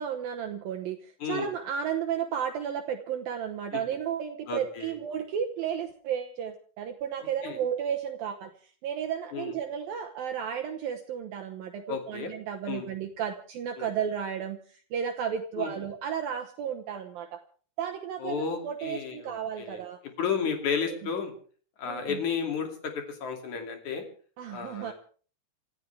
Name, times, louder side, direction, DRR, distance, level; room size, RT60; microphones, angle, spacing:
voice 1, 0.0-8.5 8.8-14.6 14.9-17.4 17.8-20.0 21.9-22.2 24.4-24.9, right 8 dB, 80° right, 6 dB, 2.0 m, -33 dB
voice 2, 4.5-5.0 7.4-7.6 9.3-9.6 11.9-12.3 12.7-12.9 13.8-13.9 15.6-15.7 18.2-19.8 20.2-21.3 21.8-24.0 24.5-24.9, left 6 dB, 45° left, 5 dB, 3.3 m, -32 dB
28.0 x 14.0 x 3.4 m, 0.42 s
omnidirectional pair, 5.6 m